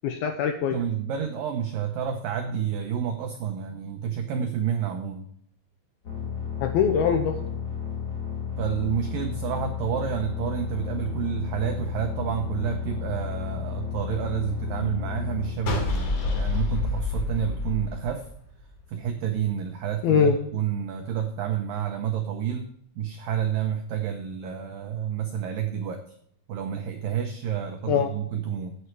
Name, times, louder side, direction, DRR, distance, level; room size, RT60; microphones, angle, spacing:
voice 1, 0.0-0.8 6.6-7.4 20.0-20.4 27.9-28.1, left 7 dB, 80° left, 6 dB, 2.3 m, -22 dB
voice 2, 0.7-5.3 8.6-18.3 18.9-22.7 23.0-26.0 26.5-28.8, right 9 dB, 85° right, 5 dB, 1.9 m, -29 dB
sound 1, 6.0-15.5, left 7 dB, 40° left, 1.4 m, -32 dB
sound 2, 15.7-18.9, left 4 dB, 60° left, 4.0 m, -28 dB
9.7 x 8.9 x 4.6 m, 0.65 s
omnidirectional pair, 5.3 m